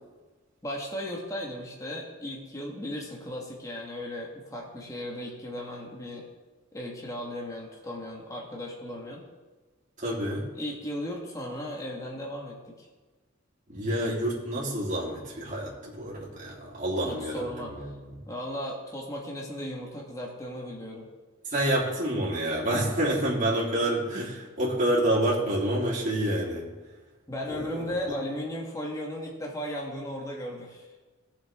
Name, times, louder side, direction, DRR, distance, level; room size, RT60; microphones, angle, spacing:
voice 1, 0.6-6.2 6.7-9.2 10.5-12.9 14.8-14.9 17.0-17.7 18.3-21.1 21.5-21.6 27.3-30.8, left 1 dB, 15° left, -2 dB, 1.7 m, -36 dB
voice 2, 10.0-10.5 13.7-18.1 21.4-26.7 27.5-27.9, right 1 dB, 40° right, -6 dB, 3.2 m, -28 dB
18.0 x 7.0 x 3.7 m, 1.3 s
head